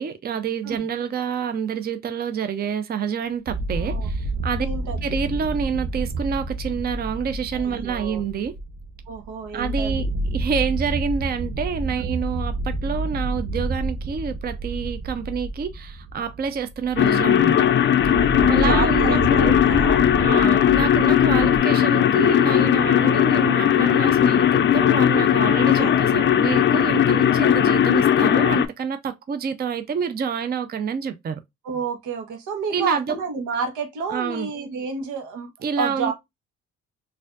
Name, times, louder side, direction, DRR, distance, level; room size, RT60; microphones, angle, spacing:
voice 1, 0.0-4.7 5.0-8.5 9.5-17.7 18.5-19.5 20.2-31.4 32.7-33.2 34.1-34.5 35.6-36.1, right 6 dB, 30° right, 0.5 m, -28 dB
sound 1, 3.5-21.6, right 2 dB, 65° right, 0.7 m, -29 dB
voice 2, 3.7-4.1 4.6-5.2 7.5-8.2 9.1-10.1 12.0-12.1 18.0-20.0 21.3-21.5 25.8-26.0 31.6-35.5 35.8-36.1, right 5 dB, 85° right, 1.1 m, -30 dB
sound 2, 17.0-28.7, left 10 dB, 40° left, 0.4 m, -18 dB
4.1 x 2.6 x 2.4 m
cardioid pair, 90°, 30 cm